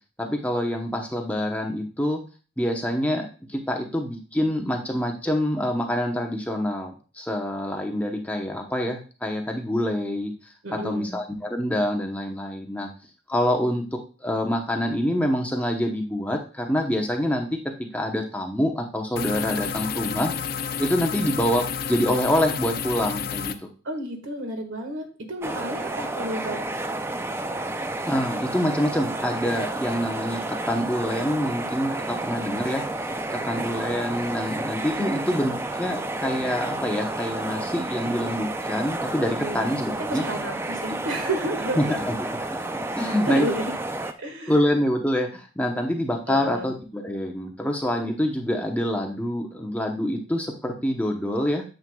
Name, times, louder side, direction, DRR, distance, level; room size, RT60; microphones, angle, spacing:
voice 1, 0.2-2.2 2.6-10.3 10.8-12.9 13.3-20.3 20.8-23.5 28.0-32.8 33.3-40.2 41.8-42.1 43.0-43.5 44.5-51.6, equal, 5° left, 1 dB, 0.8 m, -26 dB
voice 2, 10.6-11.1 23.8-26.6 34.9-35.4 39.4-39.7 40.1-42.0 43.2-43.7 44.0-44.6 46.3-46.7, right 1 dB, 85° right, 4 dB, 1.6 m, -31 dB
sound 1, 19.2-23.5, left 7 dB, 50° left, 0.5 m, -30 dB
sound 2, 25.4-44.1, right 2 dB, 10° right, 0.3 m, -31 dB
8.9 x 7.6 x 2.3 m, 0.36 s
head